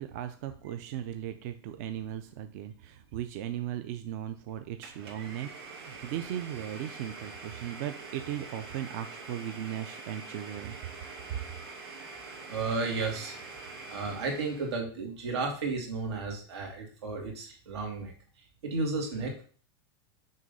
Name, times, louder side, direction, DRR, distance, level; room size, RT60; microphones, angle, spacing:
voice 1, 0.0-5.5 5.8-10.8, right 11 dB, 40° right, 8 dB, 0.4 m, -37 dB
Domestic sounds home sounds, 4.8-14.8, right 3 dB, 70° right, 2.3 m, -45 dB
voice 2, 12.5-13.4 13.9-18.1 18.6-19.4, right 3 dB, 90° right, 1 dB, 2.5 m, -33 dB
6.4 x 3.2 x 5.3 m, 0.43 s
supercardioid pair, 165°, 14 cm